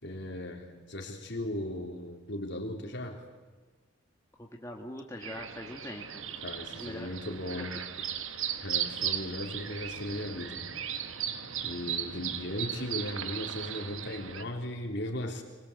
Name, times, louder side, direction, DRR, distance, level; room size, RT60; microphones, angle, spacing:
voice 1, 0.0-3.2 6.4-7.7 8.6-10.7 11.0-11.3 11.6-15.4, left 1 dB, 55° left, 2 dB, 3.6 m, -37 dB
voice 2, 4.4-6.3 6.7-7.7, left 1 dB, 15° left, 0 dB, 1.8 m, -43 dB
sound 1, 5.2-14.4, right 9 dB, 70° right, 1.4 m, -37 dB
25.0 x 21.5 x 8.2 m, 1.3 s
head